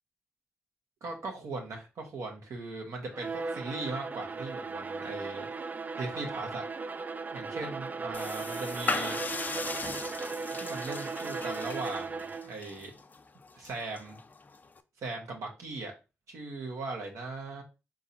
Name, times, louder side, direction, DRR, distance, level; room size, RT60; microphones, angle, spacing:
voice 1, 1.0-5.5 6.0-6.6 7.3-9.2 10.5-12.9 13.6-14.2 15.0-15.9 16.3-17.6, right 3 dB, 85° right, 1.4 m, -39 dB
Bowed string instrument, 3.1-12.6, right 4 dB, 35° right, 0.4 m, -37 dB
sound 1, 8.1-14.8, left 3 dB, 35° left, 0.5 m, -38 dB
4.1 x 3.8 x 2.8 m
cardioid pair, 60°, 5 cm